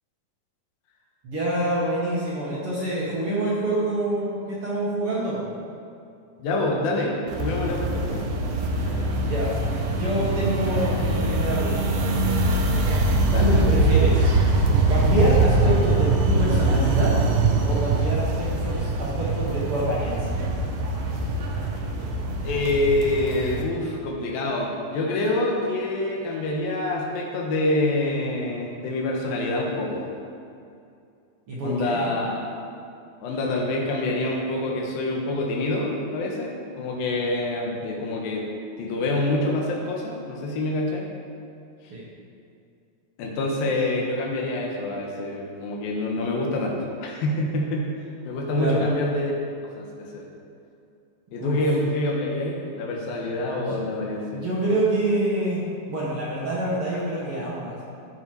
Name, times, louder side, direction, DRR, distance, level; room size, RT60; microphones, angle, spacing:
voice 1, 1.2-5.5 9.2-12.2 13.4-14.4 14.9-17.2 17.6-20.5 31.5-32.0 41.9-42.0 48.5-48.8 51.4-51.6 53.6-53.8 54.1-57.8, right 1 dB, 50° right, -7 dB, 2.0 m, -26 dB
voice 2, 6.4-8.2 8.8-9.1 13.3-13.5 22.4-30.1 31.6-32.4 33.2-38.5 38.8-41.1 41.8-41.9 43.2-47.8 48.3-49.3 49.8-50.2 51.3-54.4, left 2 dB, 85° left, -1 dB, 3.0 m, -26 dB
sound 1, 7.3-23.6, right 2 dB, 70° right, 2.3 m, -23 dB
14.0 x 6.1 x 4.6 m, 2.5 s
omnidirectional pair, 4.1 m